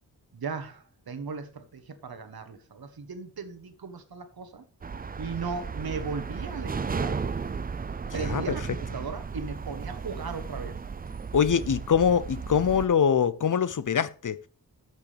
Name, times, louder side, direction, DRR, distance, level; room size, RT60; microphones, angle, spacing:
voice 1, 0.3-4.6 5.2-7.2 8.1-10.8, right 4 dB, 65° right, 1.2 m, -37 dB
sound 1, 4.8-12.9, right 5 dB, 25° right, 0.3 m, -34 dB
voice 2, 8.1-8.4 11.3-14.5, left 7 dB, 55° left, 0.6 m, -24 dB
13.0 x 5.9 x 3.4 m
wide cardioid pair, 95°, 39 cm